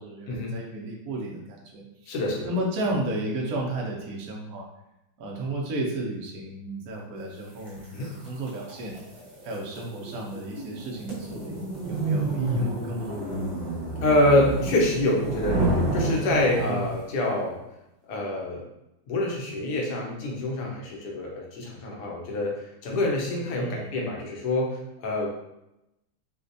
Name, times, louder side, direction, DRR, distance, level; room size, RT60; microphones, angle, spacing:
voice 1, 0.0-2.1 2.5-4.7 5.2-9.0 9.4-13.1 16.5-16.9 23.6-23.9, right 1 dB, 65° right, -2 dB, 0.8 m, -33 dB
voice 2, 2.1-2.5 7.9-8.1 12.5-12.7 14.0-17.6 18.1-18.6 19.1-25.3, left 1 dB, 65° left, -1 dB, 1.2 m, -26 dB
sound 1, 7.7-17.0, right 2 dB, 40° right, 1.3 m, -30 dB
4.2 x 2.3 x 2.6 m, 0.89 s
omnidirectional pair, 2.3 m